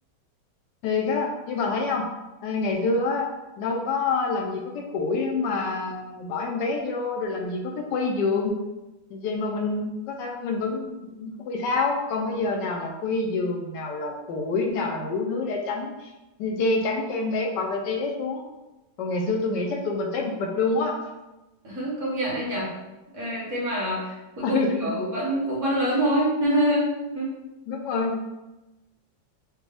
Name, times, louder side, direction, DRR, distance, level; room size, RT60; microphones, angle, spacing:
voice 1, 0.8-2.1 2.4-3.3 3.6-8.6 9.1-16.1 16.4-18.5 19.0-21.0 24.4-24.9 27.7-28.2, left 3 dB, 75° left, 1 dB, 1.2 m, -27 dB
voice 2, 21.6-22.7 23.1-27.3, equal, 45° right, -5 dB, 1.3 m, -26 dB
5.0 x 2.3 x 3.3 m, 1.0 s
omnidirectional pair, 2.0 m